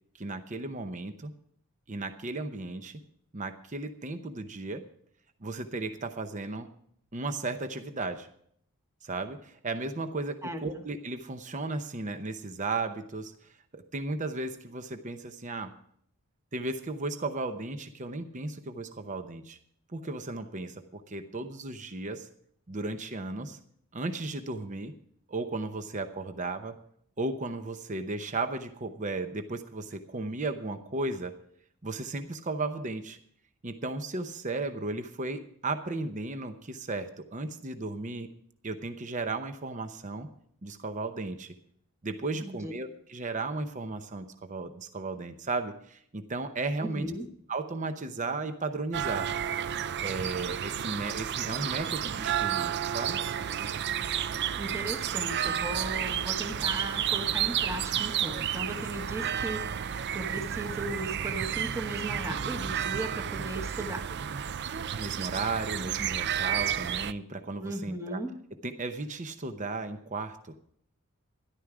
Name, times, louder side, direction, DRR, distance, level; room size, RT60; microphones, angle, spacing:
voice 1, 0.2-1.3 1.9-2.9 3.3-4.9 5.4-6.7 7.1-8.3 9.0-15.7 16.5-19.6 19.9-22.3 22.7-23.6 23.9-24.9 25.3-26.8 27.2-31.4 31.8-33.2 33.6-38.3 38.6-40.3 40.6-41.5 42.0-47.1 47.5-49.3 50.0-53.2 64.9-68.2 68.6-70.6, right 3 dB, 35° right, 8 dB, 0.8 m, -35 dB
voice 2, 42.4-42.7 46.8-47.3 54.5-64.0 67.6-68.3, right 1 dB, 15° right, 5 dB, 1.3 m, -37 dB
sound 1, 48.9-67.1, right 9 dB, 55° right, 0.4 m, -31 dB
13.0 x 11.5 x 4.9 m, 0.65 s
head